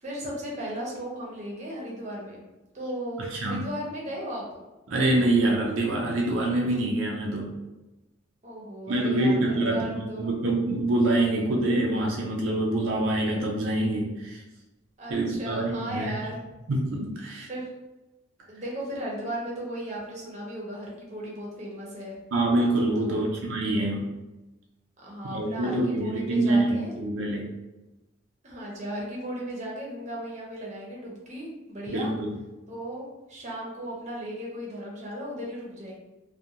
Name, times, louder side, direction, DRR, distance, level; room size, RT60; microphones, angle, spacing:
voice 1, 0.0-2.4 2.7-4.6 8.4-10.3 15.0-16.4 17.2-17.7 18.5-22.2 23.0-23.3 25.0-27.0 28.4-32.1 32.7-35.9, right 1 dB, 35° right, -4 dB, 0.6 m, -36 dB
voice 2, 3.2-3.6 4.9-7.5 8.9-14.4 15.1-16.2 16.7-17.5 22.3-24.0 25.3-27.5 31.9-32.3, right 1 dB, 80° right, -2 dB, 0.4 m, -25 dB
2.4 x 2.2 x 2.7 m, 1.1 s
head